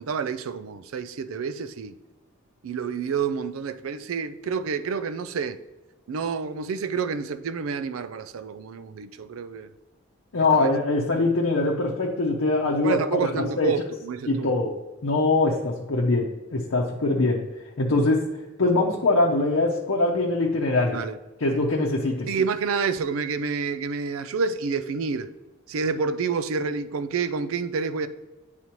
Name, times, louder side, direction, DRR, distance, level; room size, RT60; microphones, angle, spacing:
voice 1, 0.0-1.9 2.6-5.6 6.1-9.7 10.5-10.7 12.8-14.5 20.9-21.2 22.3-25.3 25.7-28.1, right 5 dB, 90° right, 0.4 m, -28 dB
voice 2, 10.3-13.3 13.6-13.7 14.3-14.7 15.0-17.4 17.8-18.3 18.6-21.0 21.4-22.3, left 2 dB, 80° left, 0.7 m, -23 dB
8.7 x 4.1 x 3.0 m
head